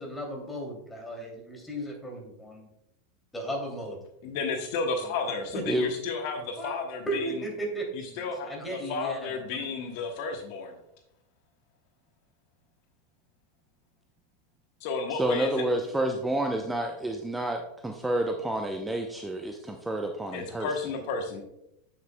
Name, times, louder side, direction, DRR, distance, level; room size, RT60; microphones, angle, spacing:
voice 1, 0.0-2.7 3.3-4.0 5.5-5.7 6.6-6.7 7.1-9.7, right 1 dB, 10° left, 0 dB, 2.8 m, -35 dB
voice 2, 4.2-7.4 7.9-8.6 8.9-10.8 14.8-15.5 20.3-21.4, left 4 dB, 55° left, 5 dB, 1.0 m, -32 dB
voice 3, 15.1-20.7, right 1 dB, 10° right, 3 dB, 0.7 m, -29 dB
8.5 x 7.3 x 2.3 m, 0.82 s
hypercardioid pair, 90°, 0 cm